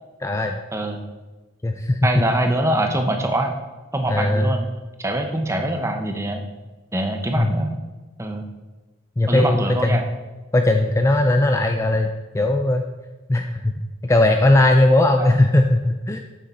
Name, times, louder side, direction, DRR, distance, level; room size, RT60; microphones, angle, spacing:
voice 1, 0.2-0.6 1.6-2.2 4.1-4.5 7.4-7.5 9.2-10.0 10.5-12.8 13.3-13.7 14.0-16.2, left 1 dB, 15° left, 5 dB, 0.4 m, -18 dB
voice 2, 0.7-1.0 2.0-3.6 3.9-4.7 5.0-6.5 6.9-7.7 8.2-8.5 9.3-10.0 15.2-15.4, right 1 dB, 15° right, 5 dB, 0.8 m, -23 dB
9.1 x 6.7 x 4.3 m, 1.2 s
head